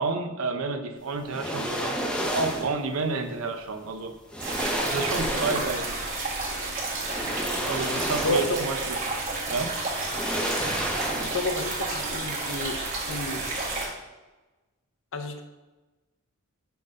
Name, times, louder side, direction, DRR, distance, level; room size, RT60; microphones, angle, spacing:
voice 1, 0.0-1.9 2.3-4.1 4.8-6.1 7.7-9.0 9.5-9.7, right 3 dB, 75° right, 7 dB, 0.6 m, -30 dB
sound 1, 1.3-2.8 3.8-3.9 4.3-5.9 7.0-8.7 9.1-9.2 10.0-11.6 11.9-12.0, equal, 5° left, 0.5 m, -31 dB
sound 2, 4.4-13.9, right 2 dB, 35° right, 1.6 m, -31 dB
voice 2, 7.6-8.6 11.2-12.8 13.1-13.5 15.1-15.4, left 2 dB, 65° left, 6 dB, 0.7 m, -31 dB
5.8 x 3.7 x 5.2 m, 1.1 s
head